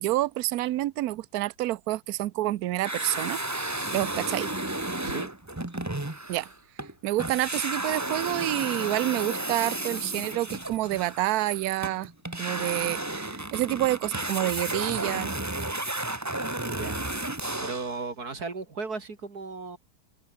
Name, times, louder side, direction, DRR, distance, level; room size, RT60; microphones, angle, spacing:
voice 1, 0.0-3.4 3.9-4.5 6.3-6.5 7.0-12.1 12.4-15.3, right 15 dB, 75° right, 0.8 m, -28 dB
sound 1, 2.8-6.9 7.2-18.0, right 2 dB, 10° right, 1.1 m, -33 dB
voice 2, 16.6-17.1 17.6-19.8, right 4 dB, 45° right, 3.1 m, -36 dB
omnidirectional pair, 2.2 m